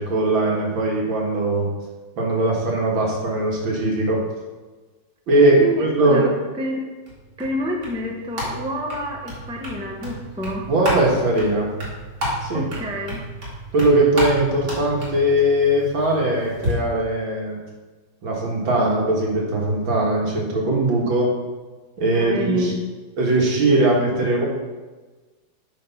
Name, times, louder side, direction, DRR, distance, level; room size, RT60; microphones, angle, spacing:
voice 1, 0.0-1.7 2.2-4.3 5.3-6.2 10.7-11.8 12.4-12.7 13.7-17.6 18.2-21.3 22.0-22.7 23.2-24.5, right 1 dB, 75° right, -2 dB, 2.4 m, -20 dB
voice 2, 5.6-6.8 7.4-10.6 12.5-13.2 22.1-22.7, equal, 5° right, 0 dB, 0.6 m, -28 dB
sound 1, 7.1-16.7, equal, 55° right, 2.7 m, -31 dB
8.5 x 4.7 x 5.8 m, 1.3 s
omnidirectional pair, 2.2 m